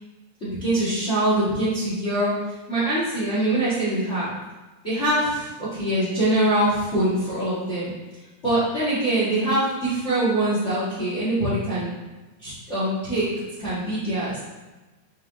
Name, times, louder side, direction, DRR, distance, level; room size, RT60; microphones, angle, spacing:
voice 1, 0.4-2.3 2.7-4.3 4.8-7.9 8.4-11.9 12.4-13.3 13.6-14.4, right 1 dB, 55° left, -10 dB, 0.8 m, -23 dB
7.8 x 3.5 x 3.6 m, 1.2 s
omnidirectional pair, 4.8 m